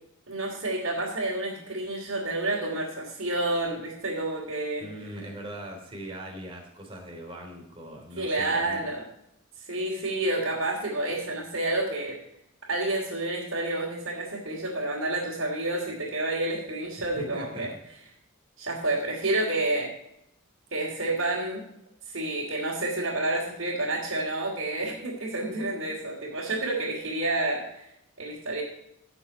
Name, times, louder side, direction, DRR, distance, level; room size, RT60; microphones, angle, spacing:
voice 1, 0.3-4.9 8.2-9.0 9.7-12.2 12.7-17.7 18.6-19.9 20.7-21.6 22.1-27.8 28.2-28.6, right 2 dB, 65° right, -6 dB, 3.1 m, -29 dB
voice 2, 4.8-8.8 9.9-10.1 17.1-17.7, equal, 25° right, 0 dB, 3.3 m, -40 dB
16.5 x 7.1 x 4.4 m, 0.78 s
head